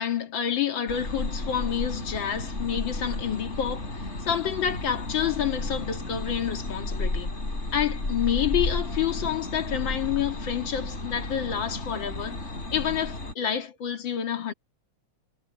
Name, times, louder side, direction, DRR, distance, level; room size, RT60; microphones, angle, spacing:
voice 1, 0.0-7.3 7.7-12.4 12.7-14.5, left 9 dB, 70° left, 2.4 m, -28 dB
sound 1, 0.9-13.3, left 2 dB, 35° left, 4.9 m, -33 dB
omnidirectional pair, 2.2 m